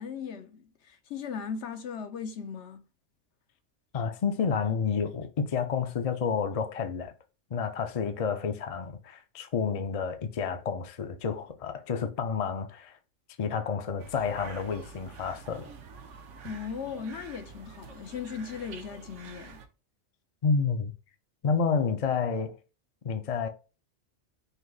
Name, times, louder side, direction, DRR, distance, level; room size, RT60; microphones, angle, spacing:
voice 1, 0.0-2.8 16.4-19.6, left 6 dB, 70° left, 0.9 m, -38 dB
voice 2, 3.9-7.1 7.5-13.0 13.4-15.7 20.4-20.9 21.4-22.5 23.0-23.5, left 5 dB, 45° left, 0.5 m, -30 dB
sound 1, 14.0-19.7, right 5 dB, 80° right, 1.1 m, -47 dB
5.4 x 2.0 x 3.8 m
omnidirectional pair, 1.2 m